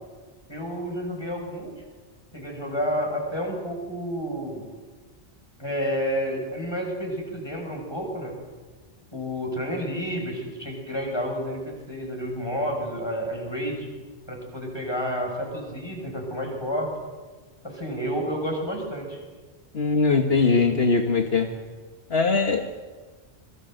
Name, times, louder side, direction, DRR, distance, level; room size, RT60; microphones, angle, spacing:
voice 1, 0.5-1.7 2.3-4.6 5.6-8.3 9.1-13.9 14.3-16.9 17.6-19.2, equal, 20° left, 1 dB, 6.5 m, -30 dB
voice 2, 19.7-21.5 22.1-22.6, left 4 dB, 65° left, 4 dB, 1.8 m, -21 dB
27.5 x 23.0 x 7.9 m, 1.4 s
omnidirectional pair, 1.1 m